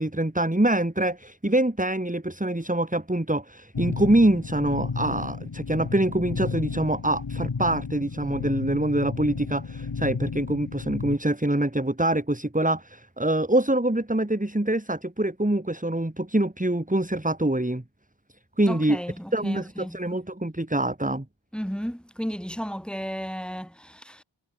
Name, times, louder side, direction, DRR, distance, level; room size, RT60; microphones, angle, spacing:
voice 1, 0.0-17.8 18.6-19.0 19.3-21.3, right 1 dB, 15° right, 2.8 m, -25 dB
sound 1, 3.7-11.2, left 5 dB, 50° left, 1.1 m, -33 dB
voice 2, 18.7-20.0 21.5-24.2, equal, ahead, 6.0 m, -34 dB
wide cardioid pair, 45°, 48 cm